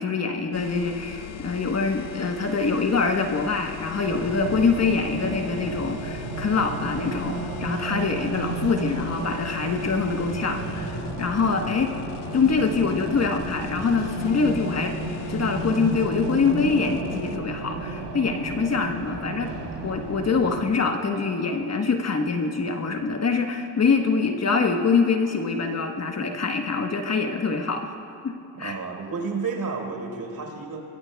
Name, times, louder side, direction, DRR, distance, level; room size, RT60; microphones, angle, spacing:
voice 1, 0.0-11.9 12.3-15.0 15.3-19.5 19.8-28.0 28.2-28.3 28.6-28.8, left 4 dB, 35° left, 4 dB, 1.2 m, -24 dB
sound 1, 0.5-17.4, left 10 dB, 90° left, 0.9 m, -39 dB
Race car auto racing, 4.1-20.6, right 3 dB, 75° right, 3.5 m, -33 dB
voice 2, 28.5-30.8, right 4 dB, 50° right, 1 dB, 4.2 m, -31 dB
25.5 x 21.5 x 2.3 m, 2.6 s
supercardioid pair, 65°, 45 cm